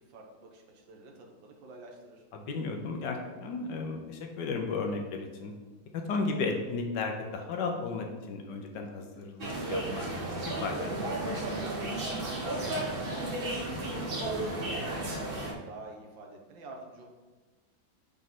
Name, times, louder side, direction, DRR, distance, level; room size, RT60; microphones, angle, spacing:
voice 1, 0.0-2.2 12.4-17.1, right 2 dB, 80° right, 1 dB, 1.7 m, -49 dB
voice 2, 2.3-5.5 6.1-10.9 11.3-11.4, left 4 dB, 65° left, 3 dB, 1.4 m, -34 dB
sound 1, 9.4-15.5, right 1 dB, 40° right, 0.8 m, -33 dB
5.3 x 3.7 x 5.9 m, 1.3 s
omnidirectional pair, 2.1 m